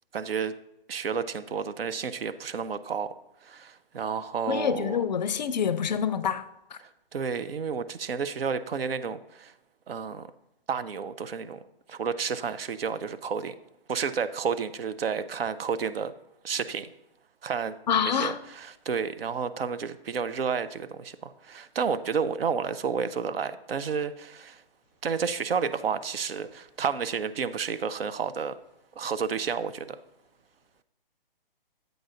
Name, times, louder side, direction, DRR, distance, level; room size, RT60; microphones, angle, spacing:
voice 1, 0.1-0.5 0.9-3.1 3.4-5.0 7.1-9.5 9.9-10.3 10.7-11.6 11.9-13.5 13.9-16.1 16.4-16.9 17.4-17.7 18.0-24.6 25.0-28.6 29.0-30.0, right 6 dB, 75° right, 0.6 m, -31 dB
voice 2, 4.5-6.4 6.7-6.8 17.9-18.4, left 7 dB, 50° left, 0.4 m, -26 dB
8.0 x 3.8 x 5.0 m
hypercardioid pair, 140°, 29 cm